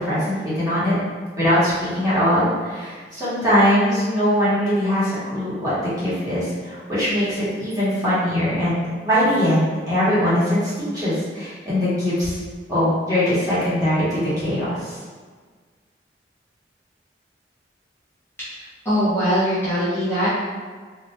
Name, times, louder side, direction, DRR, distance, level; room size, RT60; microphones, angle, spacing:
voice 1, 0.0-0.9 1.4-12.4 12.7-14.9, equal, 20° right, -13 dB, 1.5 m, -21 dB
voice 2, 18.5-20.3, equal, 15° left, -14 dB, 1.1 m, -22 dB
3.0 x 2.8 x 3.3 m, 1.5 s
head